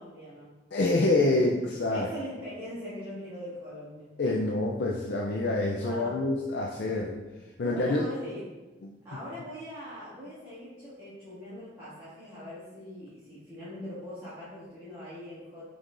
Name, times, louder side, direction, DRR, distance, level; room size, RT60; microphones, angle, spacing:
voice 1, 0.0-0.6 1.9-4.1 5.8-6.2 7.6-8.6 9.0-15.7, left 1 dB, 15° right, -14 dB, 2.0 m, -41 dB
voice 2, 0.7-2.1 4.2-7.2 7.6-8.1 8.8-8.9, left 2 dB, 65° left, -1 dB, 0.5 m, -26 dB
6.9 x 5.3 x 2.5 m, 1.2 s
head